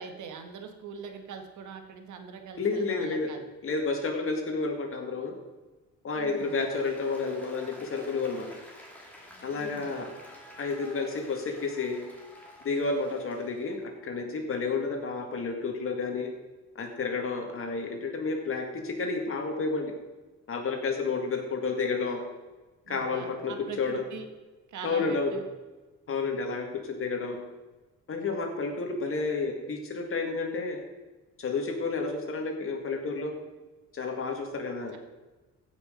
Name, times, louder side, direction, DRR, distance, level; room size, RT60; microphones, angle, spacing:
voice 1, 0.0-3.5 6.1-6.6 9.5-10.0 22.8-24.3 24.7-25.4, right 5 dB, 70° right, 5 dB, 1.6 m, -42 dB
voice 2, 2.6-3.3 3.6-5.4 6.0-8.5 9.4-10.1 10.6-12.0 12.6-16.3 16.8-19.9 20.5-22.2 22.9-24.0 24.8-25.3 26.1-27.4 28.1-30.8 31.4-33.3 33.9-34.9, left 4 dB, 45° left, 3 dB, 2.1 m, -31 dB
Applause, 6.3-13.8, left 1 dB, 5° left, 2.7 m, -50 dB
15.5 x 6.2 x 5.2 m, 1.2 s
cardioid pair, 125°, 31 cm